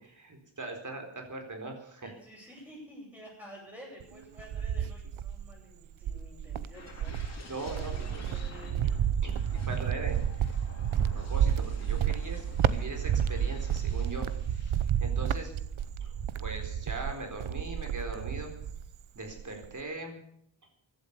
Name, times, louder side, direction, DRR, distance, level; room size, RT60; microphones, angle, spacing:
voice 1, 0.1-2.1 7.5-8.2 8.8-8.9 9.2-9.4 9.7-10.2 10.9-14.3 14.5-15.5 16.0-18.5 19.1-20.2, right 2 dB, 40° right, 4 dB, 4.2 m, -40 dB
voice 2, 2.0-9.7, right 1 dB, 5° right, -7 dB, 8.0 m, -51 dB
Cricket, 4.0-5.5 6.0-19.0 19.3-19.8, right 9 dB, 85° right, 0.9 m, -31 dB
sound 1, 6.7-15.2 15.6-15.9, left 3 dB, 35° left, 4.2 m, -50 dB
15.5 x 12.0 x 7.1 m, 0.70 s
wide cardioid pair, 125°, 47 cm